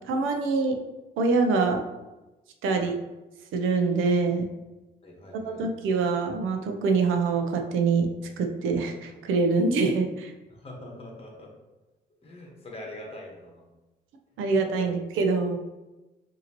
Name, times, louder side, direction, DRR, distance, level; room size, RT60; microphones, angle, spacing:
voice 1, 0.1-0.8 1.2-1.8 2.6-3.0 3.5-4.5 5.3-8.1 8.4-10.3 14.4-15.6, right 4 dB, 85° right, 4 dB, 0.6 m, -25 dB
voice 2, 5.0-5.6 10.6-11.5 12.2-13.6 14.4-14.5 14.8-14.9, left 1 dB, 30° left, -1 dB, 1.3 m, -43 dB
5.0 x 2.8 x 2.9 m, 1.1 s
cardioid pair, 90°, 20 cm